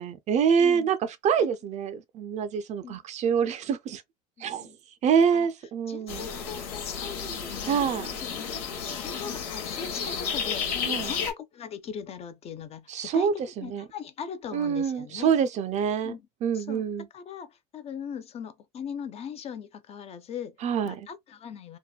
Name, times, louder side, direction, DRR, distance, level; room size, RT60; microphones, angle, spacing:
voice 1, 0.0-4.0 4.4-4.7 5.0-6.3 7.6-8.1 10.9-11.1 12.9-13.8 14.5-16.1 16.4-17.1 20.6-21.0, right 7 dB, 40° right, 0.4 m, -26 dB
voice 2, 0.6-0.9 1.4-1.5 2.8-3.0 4.4-4.8 5.3-5.5 5.9-15.3 16.0-16.3 16.5-20.6 20.8-21.8, left 7 dB, 35° left, 0.4 m, -40 dB
sound 1, 6.1-11.3, left 6 dB, 80° left, 1.0 m, -32 dB
2.8 x 2.1 x 2.2 m
supercardioid pair, 115°, 19 cm